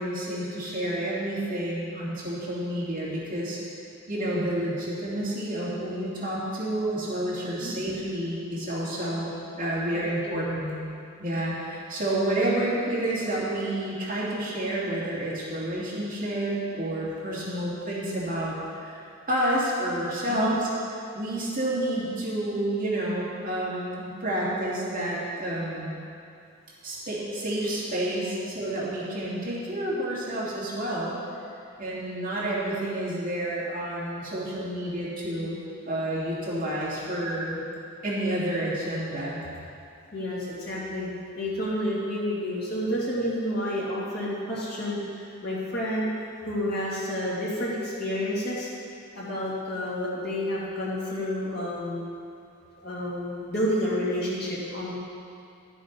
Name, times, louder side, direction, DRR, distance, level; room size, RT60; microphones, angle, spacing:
voice 1, 0.0-3.6 4.1-9.3 9.6-10.8 11.2-19.0 19.3-20.7 21.1-25.9 26.8-31.1 31.8-35.5 35.8-37.6 38.0-39.4, right 1 dB, 40° right, -8 dB, 2.5 m, -29 dB
voice 2, 7.4-7.7 10.2-10.4 20.3-20.6 40.1-41.1 41.4-46.1 46.5-48.7 49.1-52.0 52.8-54.9, equal, 45° left, -7 dB, 2.7 m, -30 dB
12.0 x 7.3 x 5.4 m, 2.5 s
head